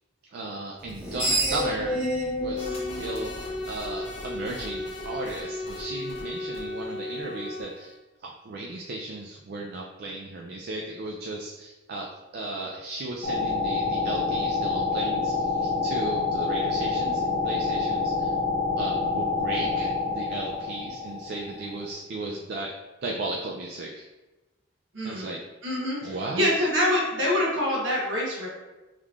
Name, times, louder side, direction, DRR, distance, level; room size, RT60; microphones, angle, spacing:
voice 1, 0.3-2.0 2.4-7.9 8.2-12.1 12.3-18.3 18.8-22.7 23.0-24.0 25.0-25.4 26.0-26.5, right 2 dB, 55° right, -1 dB, 0.3 m, -35 dB
Screech, 0.8-4.1, equal, 5° right, 0.8 m, -29 dB
sound 1, 2.5-7.9, left 2 dB, 30° left, 1.0 m, -35 dB
sound 2, 13.2-21.8, left 4 dB, 70° left, 0.7 m, -27 dB
voice 2, 24.9-25.2 25.6-28.5, left 1 dB, 70° right, -4 dB, 1.0 m, -25 dB
3.6 x 3.1 x 2.3 m, 1.1 s
head